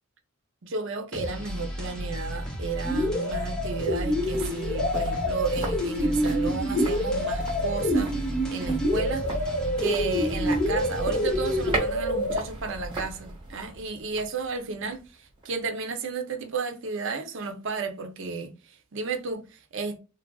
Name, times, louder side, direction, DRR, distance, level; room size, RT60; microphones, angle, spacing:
voice 1, 0.6-8.2 8.5-9.3 9.8-20.0, right 4 dB, 55° right, 0.6 m, -33 dB
sound 1, 1.1-11.8, equal, 5° left, 0.6 m, -34 dB
sound 2, 2.5-15.7 16.0-16.1, right 2 dB, 25° right, 1.1 m, -39 dB
sound 3, 2.8-12.4, equal, 40° left, 1.2 m, -27 dB
3.2 x 2.4 x 2.2 m
head